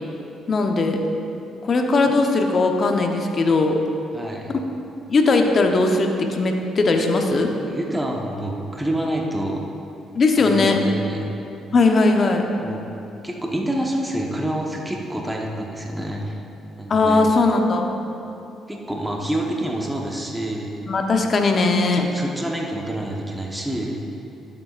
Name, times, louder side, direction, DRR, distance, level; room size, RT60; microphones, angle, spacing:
voice 1, 0.5-1.0 1.6-3.8 5.1-7.5 10.1-10.8 11.7-12.4 16.9-18.1 20.9-22.0, left 3 dB, 45° left, 3 dB, 0.9 m, -19 dB
voice 2, 4.1-4.5 7.6-9.6 10.4-11.3 12.6-12.8 13.2-16.4 16.8-17.3 18.7-20.7 21.9-24.0, right 1 dB, 10° right, -1 dB, 1.1 m, -27 dB
12.0 x 7.0 x 2.5 m, 2.8 s
supercardioid pair, 70°, 0 cm